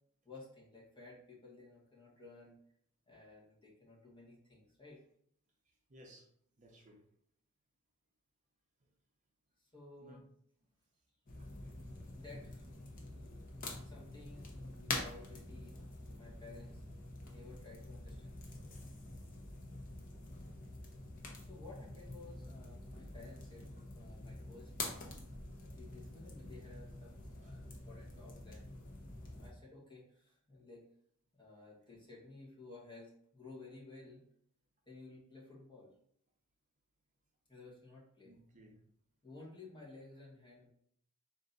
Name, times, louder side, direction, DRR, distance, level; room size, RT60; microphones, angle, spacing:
voice 1, 0.2-2.6 3.1-5.0 9.7-10.2 12.1-12.6 12.9-13.0 13.7-16.8 17.3-18.4 21.5-24.7 25.6-28.7 29.4-30.9 31.4-34.2 34.8-35.9 37.5-38.3 39.2-40.7, left 3 dB, 20° left, -6 dB, 1.4 m, -55 dB
voice 2, 5.9-6.3 6.6-7.0 10.0-10.2 11.4-11.7 27.4-27.5 38.2-38.8, equal, 35° right, 1 dB, 0.7 m, -59 dB
sound 1, 11.3-29.5, left 2 dB, 40° left, 0.7 m, -47 dB
3.7 x 2.6 x 3.9 m, 0.67 s
head